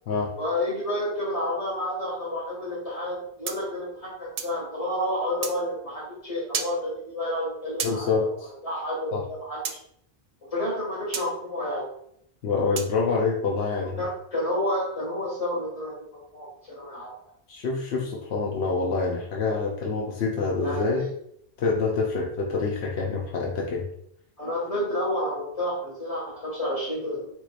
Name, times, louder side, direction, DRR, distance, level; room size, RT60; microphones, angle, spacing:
voice 1, 0.4-9.6 10.5-11.8 13.7-17.3 20.6-21.1 24.4-27.3, left 1 dB, 35° left, -5 dB, 1.8 m, -30 dB
sound 1, 3.5-4.6 5.4-5.6 6.5-6.8 7.8-8.0 9.6-9.8 11.1-11.3 12.8-13.0, right 7 dB, 65° right, 0.7 m, -32 dB
voice 2, 7.8-8.5 9.1-9.2 12.4-14.0 17.5-21.1 21.6-23.9, left 4 dB, 85° left, -1 dB, 1.0 m, -26 dB
4.6 x 4.4 x 2.5 m, 0.69 s
omnidirectional pair, 1.1 m